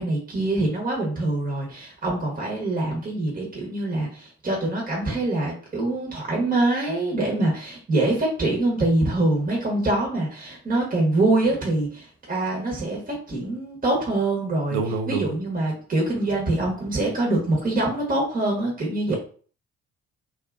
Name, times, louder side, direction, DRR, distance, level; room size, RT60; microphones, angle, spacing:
voice 1, 0.0-14.8 15.1-19.2, right 2 dB, 25° right, -2 dB, 1.1 m, -24 dB
voice 2, 14.7-15.3 19.1-19.2, right 5 dB, 70° right, 6 dB, 0.6 m, -27 dB
2.5 x 2.4 x 2.4 m, 0.42 s
hypercardioid pair, 55°, 34 cm